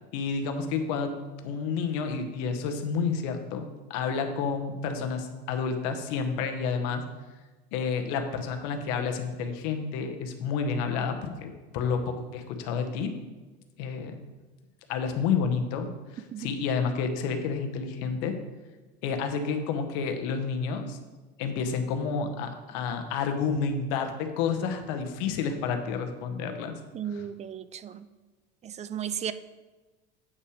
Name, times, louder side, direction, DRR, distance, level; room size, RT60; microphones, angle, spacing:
voice 1, 0.1-1.1 1.4-3.6 3.9-7.0 7.7-13.1 13.8-14.1 14.9-18.3 19.0-21.0 21.4-26.7, left 5 dB, 80° left, 6 dB, 1.1 m, -30 dB
voice 2, 26.9-28.1 28.6-29.3, right 9 dB, 30° right, 14 dB, 0.4 m, -35 dB
8.3 x 5.6 x 4.9 m, 1.2 s
supercardioid pair, 110°, 21 cm